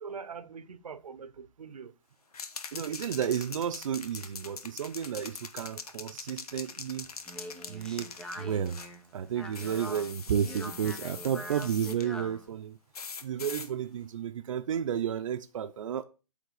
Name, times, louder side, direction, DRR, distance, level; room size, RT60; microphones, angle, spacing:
voice 1, 0.0-1.9, right 5 dB, 85° right, 0.9 m, -43 dB
sound 1, 2.3-9.0 9.5-12.1 12.9-13.7, left 5 dB, 80° left, 1.0 m, -43 dB
voice 2, 2.7-7.1 7.7-8.8 9.1-12.8 13.2-16.0, right 8 dB, 60° right, 0.6 m, -32 dB
Speech, 7.0-12.5, equal, 5° left, 0.4 m, -44 dB
8.3 x 3.6 x 6.7 m
hypercardioid pair, 150°, 19 cm